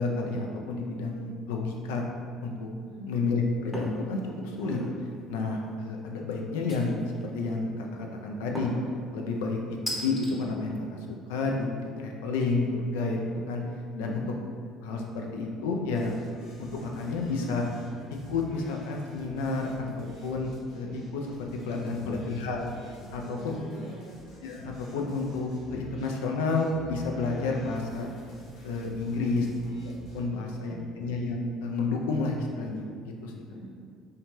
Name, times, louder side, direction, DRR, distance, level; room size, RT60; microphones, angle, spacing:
voice 1, 0.0-2.0 2.4-2.7 3.1-4.8 5.3-6.9 7.2-8.7 9.1-9.6 10.0-13.6 14.0-14.2 14.8-16.1 16.6-17.6 18.3-22.7 23.1-23.6 24.4-28.1 28.6-29.5 30.1-33.3, left 3 dB, 85° left, 1 dB, 0.3 m, -30 dB
sound 1, 3.7-4.0 4.5-5.0 6.7-7.2 8.5-8.9 9.9-10.3, equal, 5° left, 0.7 m, -35 dB
voice 2, 13.9-14.4 23.1-24.1 29.0-29.5 30.3-31.0 33.5-33.7, left 2 dB, 75° right, -6 dB, 1.0 m, -44 dB
sound 2, 15.9-30.2, left 1 dB, 65° left, 0.7 m, -50 dB
2.7 x 2.2 x 3.0 m, 2.1 s
supercardioid pair, 75°, 0 cm